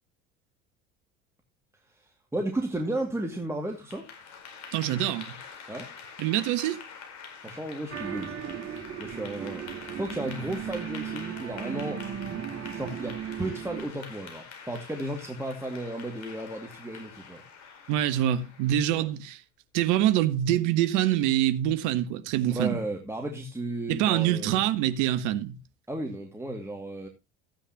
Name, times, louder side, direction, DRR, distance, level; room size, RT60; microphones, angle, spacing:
voice 1, 1.9-4.1 5.7-5.9 7.4-8.4 8.7-12.0 12.6-17.4 18.9-19.1 22.5-24.6 25.9-27.1, right 1 dB, 5° right, 2.3 m, -34 dB
Clapping / Applause, 3.7-18.9, left 6 dB, 50° left, 4.3 m, -46 dB
voice 2, 4.7-5.4 6.2-6.8 17.9-19.4 19.7-22.8 23.9-25.6, right 12 dB, 55° right, 1.3 m, -25 dB
sound 1, 7.9-13.8, right 9 dB, 40° right, 3.5 m, -36 dB
14.5 x 9.7 x 2.9 m
figure-of-eight pair, 65°, 36 cm